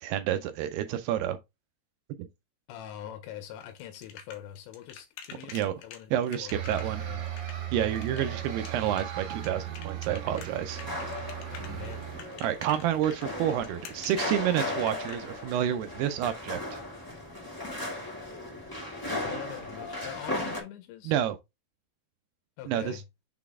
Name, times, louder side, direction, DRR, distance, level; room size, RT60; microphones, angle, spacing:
voice 1, 0.0-1.4 5.5-5.7 6.1-7.0 7.7-10.8 12.4-16.8 21.1-21.4 22.7-23.0, right 10 dB, 80° right, 2.4 m, -29 dB
voice 2, 2.7-7.2 8.1-8.5 11.5-12.1 19.1-21.2 22.6-23.0, left 11 dB, 85° left, 3.1 m, -43 dB
sound 1, 3.6-15.2, left 7 dB, 70° left, 2.7 m, -47 dB
sound 2, 6.5-12.2, right 10 dB, 55° right, 2.6 m, -37 dB
sound 3, 10.7-20.6, left 1 dB, 15° left, 0.6 m, -37 dB
6.6 x 4.0 x 3.5 m
omnidirectional pair, 5.0 m